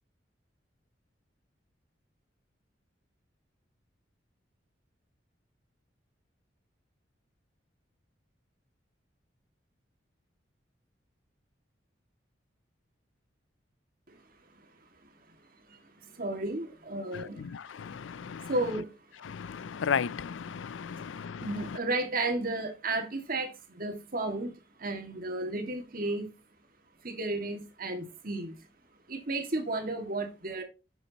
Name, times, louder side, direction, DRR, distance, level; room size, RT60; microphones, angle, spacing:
voice 1, 15.7-17.5 18.0-19.0 20.6-24.5 24.8-26.3 27.0-28.6 29.1-30.6, right 2 dB, 50° right, 2.0 m, -34 dB
voice 2, 17.1-18.5 19.3-21.5, left 7 dB, 85° left, 0.4 m, -35 dB
9.7 x 7.1 x 2.9 m
head